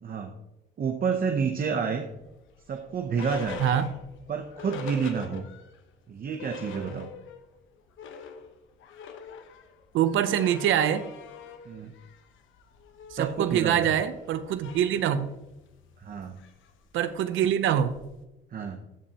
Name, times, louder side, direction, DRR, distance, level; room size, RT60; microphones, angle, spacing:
voice 1, 0.0-0.3 0.8-2.1 2.7-3.6 4.3-5.4 6.1-7.1 11.7-11.9 13.2-14.0 16.0-16.4 18.5-18.8, right 6 dB, 45° right, 5 dB, 0.8 m, -29 dB
sound 1, 2.2-5.8 6.1-6.2 6.4-7.5 7.8-18.2, left 5 dB, 75° left, 1.0 m, -44 dB
voice 2, 9.9-11.0 13.1-15.3 16.9-18.0, right 9 dB, 80° right, 11 dB, 0.6 m, -24 dB
14.0 x 5.3 x 2.9 m, 0.95 s
cardioid pair, 90°, 20 cm